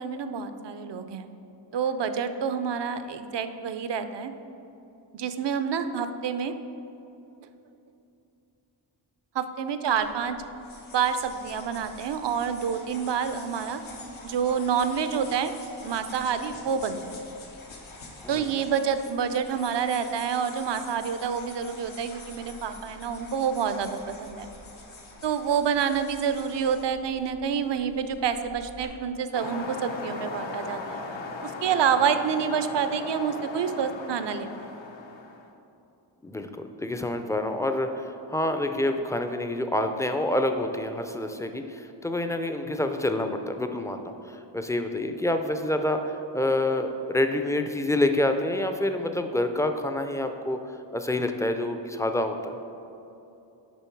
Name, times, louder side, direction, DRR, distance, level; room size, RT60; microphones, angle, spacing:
voice 1, 0.0-1.3 1.7-4.3 5.1-6.5 9.3-10.4 10.9-13.8 14.2-17.2 18.3-24.5 25.2-31.0 31.4-34.7, right 7 dB, 60° right, 10 dB, 0.6 m, -28 dB
sound 1, 10.0-28.9, left 2 dB, 85° left, 1.1 m, -46 dB
sound 2, 29.3-35.5, left 3 dB, 70° left, 0.9 m, -37 dB
voice 2, 36.2-50.6 50.9-52.6, left 1 dB, 5° left, 6 dB, 0.4 m, -27 dB
7.0 x 5.2 x 4.5 m, 2.8 s
cardioid pair, 65°, 47 cm